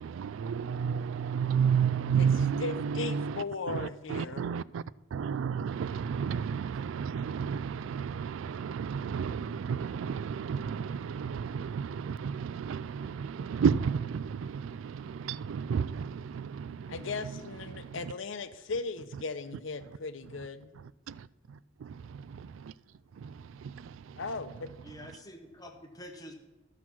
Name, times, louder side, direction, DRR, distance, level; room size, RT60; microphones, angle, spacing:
voice 1, 0.0-4.8 5.1-17.0 17.2-17.3 17.7-18.1 21.1-22.7 23.2-24.2, right 7 dB, 85° right, 0.3 m, -32 dB
voice 2, 2.6-4.5 16.9-20.7 24.2-24.7, left 4 dB, 80° left, 0.7 m, -37 dB
voice 3, 24.8-26.3, left 1 dB, 20° left, 1.1 m, -47 dB
12.5 x 5.8 x 6.1 m
head